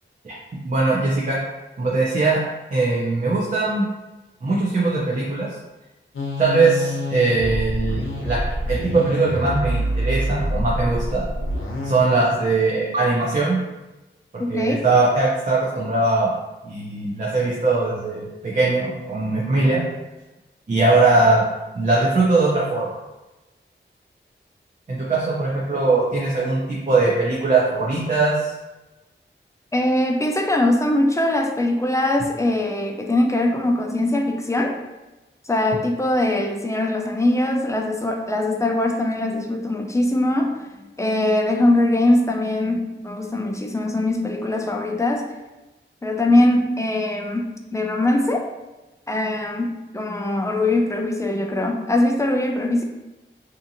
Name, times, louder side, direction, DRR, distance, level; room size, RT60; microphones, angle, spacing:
voice 1, 0.6-1.4 1.8-2.4 2.7-3.9 4.4-5.5 6.4-11.2 11.8-13.6 14.5-16.3 16.6-19.8 20.7-21.4 21.7-23.0 24.9-28.5, right 3 dB, 40° right, -4 dB, 0.5 m, -20 dB
sound 1, 6.1-12.0, equal, 85° left, 0.6 m, -26 dB
voice 2, 14.4-14.8 29.7-34.7 35.5-40.7 41.0-45.2 46.0-48.4 49.1-52.8, left 1 dB, 15° left, 2 dB, 0.4 m, -21 dB
2.7 x 2.5 x 2.6 m, 1.1 s
wide cardioid pair, 70°, 21 cm